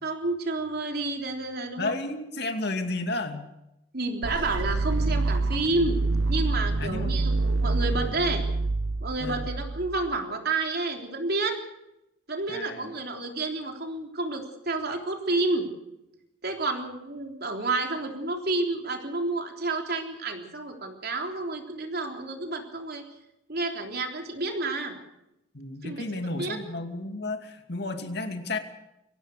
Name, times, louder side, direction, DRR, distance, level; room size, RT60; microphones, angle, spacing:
voice 1, 0.0-1.9 3.9-6.0 6.3-8.4 9.0-11.6 12.3-15.7 16.4-23.0 23.5-25.0 25.8-26.1 26.4-26.6, right 2 dB, 55° right, 3 dB, 3.5 m, -30 dB
voice 2, 1.8-3.5 6.8-7.1 9.2-9.5 12.5-12.9 25.5-28.6, left 2 dB, 55° left, 6 dB, 2.5 m, -32 dB
sound 1, 4.2-10.2, right 3 dB, 80° right, 0.7 m, -27 dB
24.0 x 16.5 x 6.7 m, 0.88 s
head